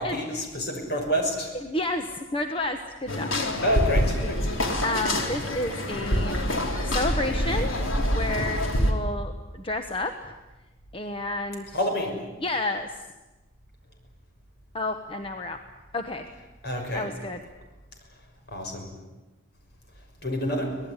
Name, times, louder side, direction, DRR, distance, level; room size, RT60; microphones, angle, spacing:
voice 1, 0.0-1.5 3.6-4.4 11.7-12.2 16.6-17.1 18.5-18.9 20.2-20.7, equal, 55° left, 3 dB, 6.3 m, -28 dB
voice 2, 1.5-3.3 4.8-6.4 6.8-7.8 8.1-10.4 10.9-11.8 12.4-12.9 14.7-15.6 15.9-16.3 16.9-17.4, left 2 dB, 25° left, 6 dB, 1.2 m, -30 dB
sound 1, 3.1-8.9, equal, 70° left, 3.7 m, -26 dB
25.0 x 18.5 x 9.8 m, 1.1 s
head